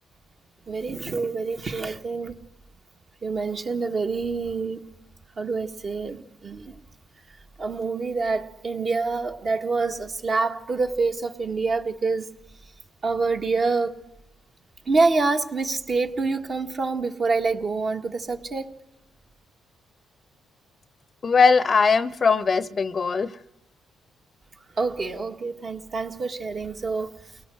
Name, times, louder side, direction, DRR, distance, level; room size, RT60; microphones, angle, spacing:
voice 1, 0.7-2.4 3.2-4.9 5.4-6.8 7.6-12.3 13.0-14.0 14.9-18.7 24.8-27.2, right 4 dB, 40° right, 1.7 m, -26 dB
voice 2, 21.2-23.3, left 5 dB, 40° left, 0.7 m, -20 dB
29.0 x 19.0 x 6.5 m
cardioid pair, 90°, 0 cm